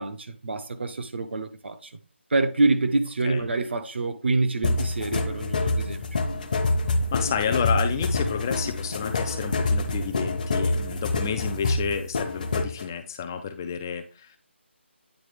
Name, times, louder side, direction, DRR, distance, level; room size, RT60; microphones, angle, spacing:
voice 1, 0.0-1.9 2.3-6.1, right 3 dB, 65° right, 0.9 m, -26 dB
sound 1, 4.6-12.8, left 2 dB, 40° left, 0.9 m, -26 dB
voice 2, 7.1-14.4, left 7 dB, 15° left, 0.4 m, -30 dB
9.2 x 3.6 x 3.4 m
figure-of-eight pair, 165°, 6 cm